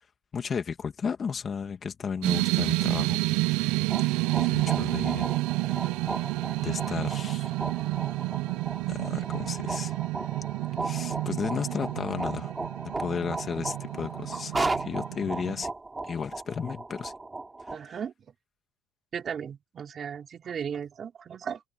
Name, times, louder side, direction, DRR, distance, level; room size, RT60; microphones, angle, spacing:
voice 1, 0.3-3.7 4.4-5.3 6.6-7.5 8.9-10.0 10.8-12.5 13.0-15.7 16.0-17.1, left 6 dB, 35° left, 2.1 m, -34 dB
sound 1, 2.2-15.6, right 21 dB, 80° right, 0.6 m, -29 dB
sound 2, 3.7-17.8, right 3 dB, 15° right, 3.0 m, -36 dB
voice 2, 17.7-18.1 19.1-21.6, right 7 dB, 40° right, 4.4 m, -36 dB
supercardioid pair, 105°, 0 cm